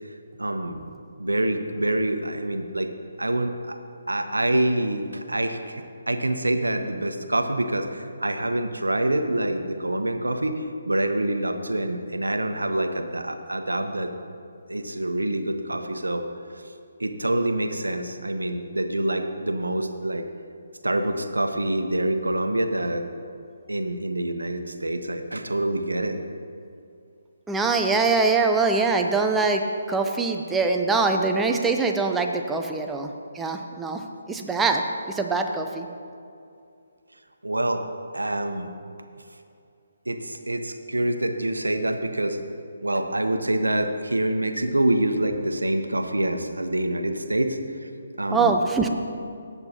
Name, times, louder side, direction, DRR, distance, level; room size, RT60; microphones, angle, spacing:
voice 1, 0.4-0.8 1.2-2.9 3.2-3.8 4.1-14.1 14.7-16.3 17.0-20.3 20.8-23.1 23.7-26.2 37.4-37.8 38.1-38.7 40.1-42.4 42.8-47.9 48.2-48.5, right 1 dB, 80° right, 7 dB, 0.9 m, -26 dB
voice 2, 27.5-29.6 29.9-33.1 33.3-34.8 35.1-35.9 48.3-48.9, right 4 dB, 5° right, 4 dB, 0.7 m, -23 dB
18.0 x 8.1 x 2.9 m, 2.4 s
figure-of-eight pair, 145°, 0 cm